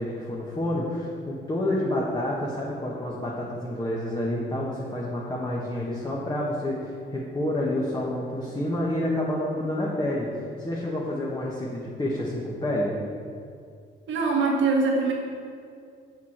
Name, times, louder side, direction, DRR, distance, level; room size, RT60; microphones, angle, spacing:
voice 1, 0.0-12.9, left 1 dB, 20° left, -5 dB, 1.5 m, -29 dB
voice 2, 14.1-15.1, right 3 dB, 70° right, -1 dB, 1.8 m, -23 dB
7.2 x 6.2 x 6.0 m, 2.3 s
cardioid pair, 90°, 20 cm